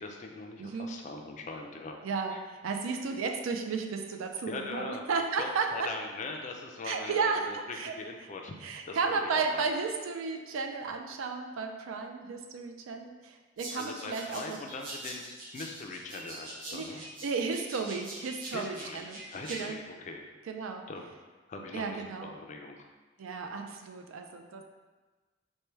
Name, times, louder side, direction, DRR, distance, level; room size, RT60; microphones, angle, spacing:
voice 1, 0.0-2.0 2.3-2.4 4.5-5.0 5.4-9.6 13.7-15.2 15.5-17.0 18.5-20.2 20.9-21.1 21.5-22.8, left 3 dB, 35° left, 2 dB, 0.3 m, -41 dB
voice 2, 0.6-0.9 2.0-5.9 6.8-7.9 8.6-14.6 16.7-19.2 19.5-19.8 20.5-20.8 21.7-22.3 23.2-24.6, right 4 dB, 75° right, 4 dB, 0.4 m, -33 dB
sound 1, 13.6-19.6, right 2 dB, 45° right, 0.8 m, -44 dB
4.3 x 2.1 x 3.3 m, 1.3 s
head